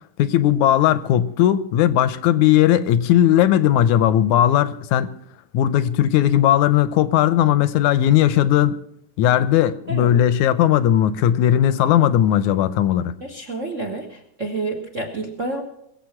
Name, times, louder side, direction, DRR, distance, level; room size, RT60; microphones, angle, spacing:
voice 1, 0.2-5.1 5.5-8.8 9.2-13.1, left 11 dB, 75° left, 1.9 m, -17 dB
voice 2, 13.2-15.6, right 2 dB, 55° right, 0.8 m, -29 dB
21.5 x 7.7 x 5.8 m
omnidirectional pair, 3.6 m